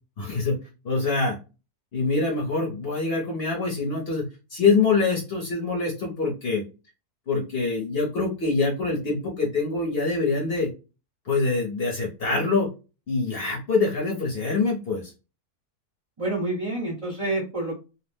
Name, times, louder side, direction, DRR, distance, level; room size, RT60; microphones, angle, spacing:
voice 1, 0.2-0.6 0.8-1.4 1.9-4.2 4.5-6.6 7.3-10.7 11.3-12.7 13.1-15.1, left 4 dB, 50° left, -1 dB, 0.8 m, -25 dB
voice 2, 16.2-17.8, right 2 dB, 35° right, -2 dB, 0.5 m, -28 dB
2.6 x 2.0 x 3.2 m, 0.31 s
omnidirectional pair, 1.7 m